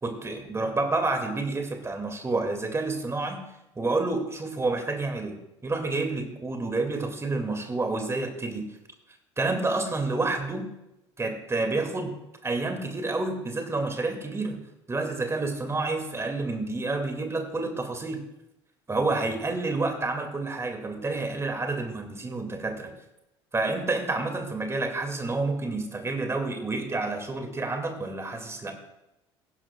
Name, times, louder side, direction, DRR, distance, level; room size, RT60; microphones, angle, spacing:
voice 1, 0.0-3.4 3.8-8.8 9.4-10.7 11.2-12.1 12.4-14.6 14.9-18.2 18.9-22.9 23.5-28.7, right 3 dB, 20° right, 5 dB, 2.2 m, -29 dB
16.0 x 11.0 x 2.3 m, 0.88 s
figure-of-eight pair, 60°, 15 cm